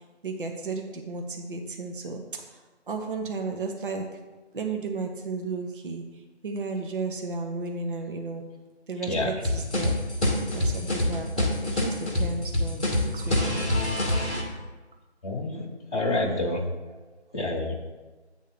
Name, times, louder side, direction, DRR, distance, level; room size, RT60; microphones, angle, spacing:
voice 1, 0.2-2.6 2.9-4.1 4.5-8.4 8.9-9.9 10.3-13.8 14.2-14.6 16.9-17.3, right 3 dB, 50° right, 3 dB, 0.8 m, -34 dB
sound 1, 9.4-14.4, left 1 dB, 5° left, 0.7 m, -25 dB
voice 2, 15.2-15.6 15.9-16.6 17.3-17.7, left 2 dB, 35° left, -3 dB, 1.1 m, -27 dB
8.6 x 3.6 x 6.6 m, 1.2 s
figure-of-eight pair, 160°, 34 cm